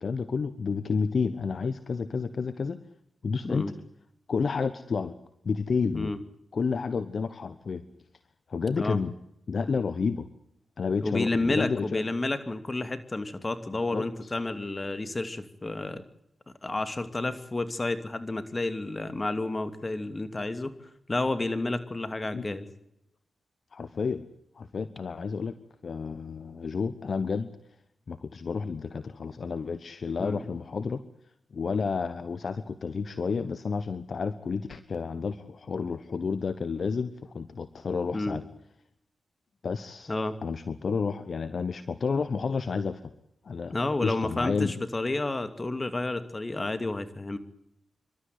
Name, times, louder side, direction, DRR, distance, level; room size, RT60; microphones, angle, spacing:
voice 1, 0.0-2.8 3.2-3.6 4.3-5.1 5.4-6.1 6.5-7.8 8.5-9.1 9.5-10.3 10.8-12.0 13.9-14.0 22.3-22.5 23.7-24.2 24.5-25.5 25.8-27.5 28.1-31.0 31.5-38.4 39.6-40.1 40.4-43.0 43.4-43.7 44.0-44.7, left 5 dB, 65° left, 12 dB, 1.1 m, -30 dB
voice 2, 11.0-16.0 16.6-20.7 21.1-22.7 30.2-30.4 38.1-38.4 40.1-40.3 43.7-47.4, left 2 dB, 35° left, 10 dB, 2.6 m, -30 dB
27.5 x 13.0 x 9.6 m, 0.78 s
supercardioid pair, 40°, 0 cm